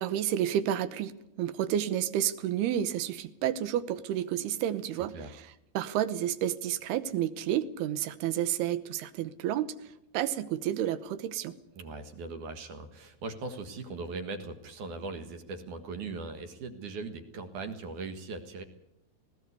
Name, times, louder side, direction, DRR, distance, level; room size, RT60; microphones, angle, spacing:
voice 1, 0.0-5.2 5.7-11.6, right 11 dB, 80° right, 14 dB, 3.0 m, -30 dB
voice 2, 11.8-18.6, right 3 dB, 60° right, 7 dB, 2.8 m, -39 dB
18.5 x 17.5 x 8.2 m, 0.84 s
omnidirectional pair, 4.7 m